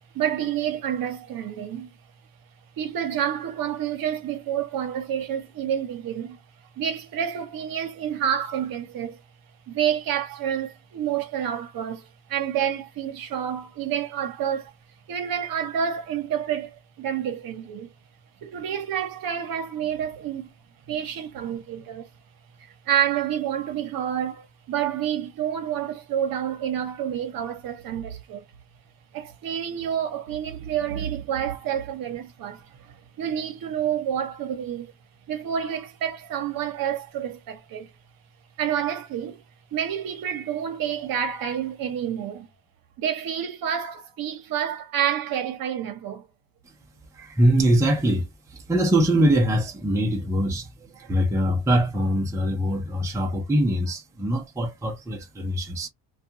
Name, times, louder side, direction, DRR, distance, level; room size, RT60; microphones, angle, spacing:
voice 1, 0.1-1.9 2.8-6.4 6.8-9.2 9.7-14.7 15.1-17.9 18.4-20.5 20.9-22.1 22.6-28.4 29.1-34.9 35.3-37.9 38.6-39.4 39.7-42.5 43.0-46.3 51.0-51.1, right 9 dB, 50° right, 0.9 m, -29 dB
voice 2, 47.2-50.7 51.0-55.9, right 1 dB, 5° right, 0.5 m, -23 dB
2.3 x 2.3 x 2.8 m
cardioid pair, 160°, 43 cm